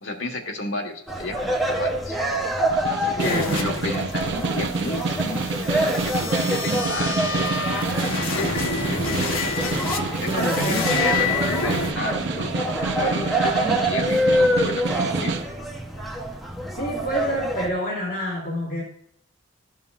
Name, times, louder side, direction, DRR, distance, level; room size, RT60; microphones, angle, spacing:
voice 1, 0.0-2.2 2.9-9.4 10.2-15.3, left 2 dB, 70° left, 2 dB, 1.4 m, -32 dB
sound 1, 1.1-17.7, right 1 dB, ahead, 0.8 m, -26 dB
Snare drum, 2.7-15.5, right 3 dB, 60° right, 0.6 m, -28 dB
sound 2, 3.2-11.9, left 4 dB, 85° left, 1.0 m, -29 dB
voice 2, 3.2-3.7 10.3-11.0 16.8-18.8, right 1 dB, 45° left, -3 dB, 2.2 m, -27 dB
12.5 x 5.6 x 2.4 m, 0.71 s
head